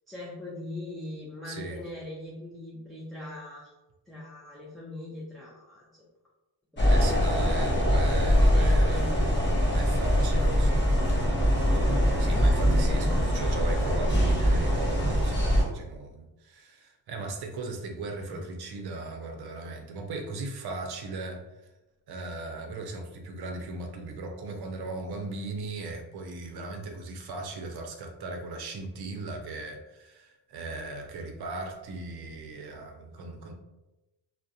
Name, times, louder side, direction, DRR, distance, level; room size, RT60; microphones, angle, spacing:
voice 1, 0.1-3.7 4.1-5.8 8.4-9.1 10.6-10.8 12.7-13.6 18.3-18.5, left 2 dB, ahead, -6 dB, 0.3 m, -41 dB
voice 2, 1.4-1.8 6.9-9.1 9.6-10.9 11.6-21.4 22.1-33.5, right 2 dB, 60° right, 3 dB, 0.6 m, -38 dB
sound 1, 6.8-15.6, equal, 25° left, 0.7 m, -23 dB
2.4 x 2.1 x 2.6 m, 1.0 s
cardioid pair, 105°, 43 cm